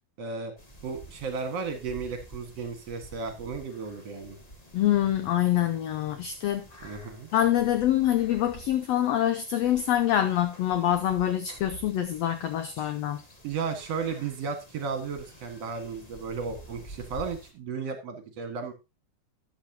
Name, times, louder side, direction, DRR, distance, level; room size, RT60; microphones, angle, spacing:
voice 1, 0.2-0.5 0.8-4.4 6.8-7.3 12.8-12.9 13.4-18.7, right 5 dB, 55° right, 6 dB, 2.6 m, -34 dB
sound 1, 0.6-17.5, right 1 dB, 55° left, 0.4 m, -49 dB
voice 2, 4.7-6.6 7.3-13.2, left 11 dB, 80° left, 9 dB, 1.5 m, -25 dB
13.0 x 9.4 x 2.8 m, 0.25 s
omnidirectional pair, 3.6 m